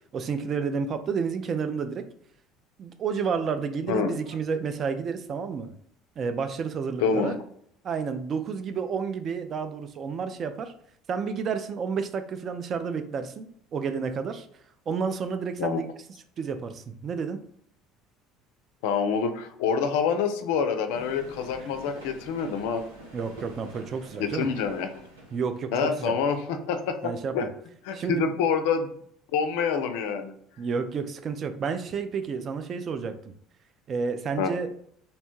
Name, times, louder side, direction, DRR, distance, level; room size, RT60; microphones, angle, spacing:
voice 1, 0.1-2.0 2.8-5.7 6.2-7.4 7.8-10.7 11.1-13.5 13.7-14.5 14.9-15.9 16.4-17.4 23.1-24.5 25.3-26.1 27.0-27.3 27.9-28.4 30.6-33.2 33.9-34.7, right 5 dB, 45° right, 9 dB, 0.3 m, -30 dB
voice 2, 7.0-7.3 15.6-15.8 18.8-22.8 24.2-24.9 25.7-27.0 27.3-27.5 27.8-28.9 29.3-30.3 34.4-34.5, left 6 dB, 70° left, 8 dB, 0.3 m, -26 dB
sound 1, 20.9-25.8, right 1 dB, 85° right, 0.6 m, -47 dB
2.7 x 2.1 x 2.9 m, 0.67 s
hypercardioid pair, 65°, 0 cm